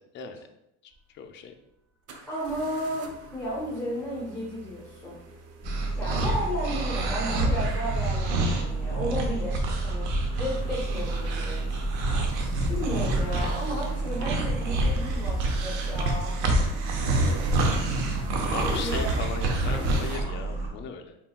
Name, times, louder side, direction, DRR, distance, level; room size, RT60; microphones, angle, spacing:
voice 1, 0.1-0.5 0.8-1.5 18.5-21.2, left 6 dB, 35° left, 6 dB, 0.4 m, -38 dB
sound 1, 0.9-1.0 2.1-20.2, right 3 dB, 45° right, 0.6 m, -45 dB
voice 2, 2.3-5.2 6.0-11.8 12.7-16.3 18.5-19.1, equal, 10° left, -7 dB, 1.1 m, -33 dB
sound 2, 5.6-20.7, right 3 dB, 25° right, 1.2 m, -31 dB
sound 3, 5.6-20.2, right 2 dB, 90° right, 0.8 m, -28 dB
3.9 x 3.7 x 2.3 m, 0.84 s
cardioid pair, 130°, 33 cm